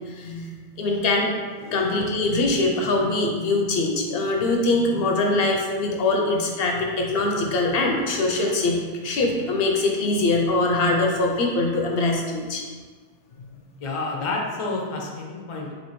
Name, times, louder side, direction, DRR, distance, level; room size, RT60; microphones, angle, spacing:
voice 1, 0.1-1.3 1.7-12.6, left 2 dB, 75° left, 1 dB, 0.8 m, -23 dB
voice 2, 13.8-15.7, left 3 dB, 40° left, -1 dB, 0.5 m, -30 dB
4.2 x 2.6 x 3.0 m, 1.5 s
omnidirectional pair, 1.0 m